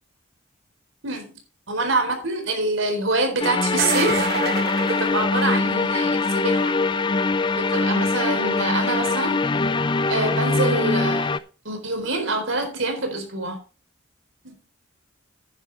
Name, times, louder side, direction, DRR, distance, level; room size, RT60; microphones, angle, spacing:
voice 1, 1.7-4.3 4.8-6.8 7.5-9.4 10.1-11.4 11.6-13.6 14.4-14.5, right 2 dB, 75° right, 5 dB, 4.1 m, -26 dB
sound 1, 3.4-11.4, left 3 dB, 25° left, 0.4 m, -22 dB
sound 2, 3.6-5.8 11.4-11.5 13.3-13.4, right 5 dB, 50° right, 1.1 m, -29 dB
10.5 x 10.0 x 3.5 m, 0.34 s
head